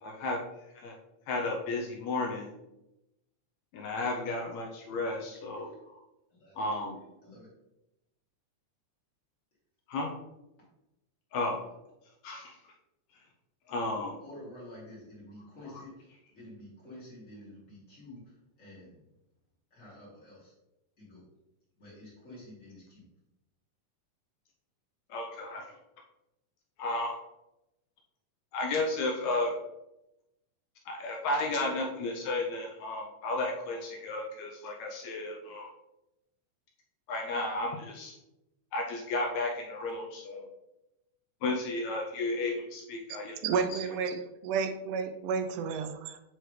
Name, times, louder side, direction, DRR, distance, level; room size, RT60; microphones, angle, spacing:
voice 1, 0.0-0.4 0.7-1.0 1.3-2.5 3.7-5.7 6.6-7.0 9.9-10.1 11.3-11.7 12.2-12.6 13.7-14.1 25.1-25.6 26.8-27.2 28.5-29.6 30.9-35.7 37.1-38.2 38.7-40.5 41.4-43.4 43.7-43.8, left 2 dB, 75° left, 1 dB, 1.8 m, -33 dB
voice 2, 5.6-6.8 7.2-7.5 14.2-19.0 19.7-20.5 21.0-21.2 21.8-23.0, left 1 dB, 25° left, -7 dB, 2.6 m, -50 dB
voice 3, 43.4-46.2, right 6 dB, 85° right, 7 dB, 2.1 m, -31 dB
7.8 x 4.5 x 3.2 m, 0.91 s
omnidirectional pair, 3.6 m